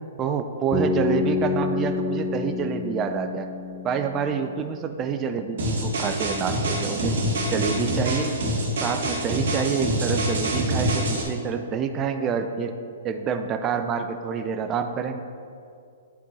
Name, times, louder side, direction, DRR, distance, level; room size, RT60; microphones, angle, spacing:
voice 1, 0.2-3.5 3.8-7.2 7.5-8.3 8.8-12.8 13.0-15.2, right 6 dB, 25° right, 7 dB, 0.5 m, -27 dB
Bass guitar, 0.7-4.7, left 4 dB, ahead, 0.8 m, -28 dB
sound 1, 5.6-11.2, right 1 dB, 70° right, 2.1 m, -26 dB
10.5 x 4.5 x 4.1 m, 2.3 s
hypercardioid pair, 130°, 0 cm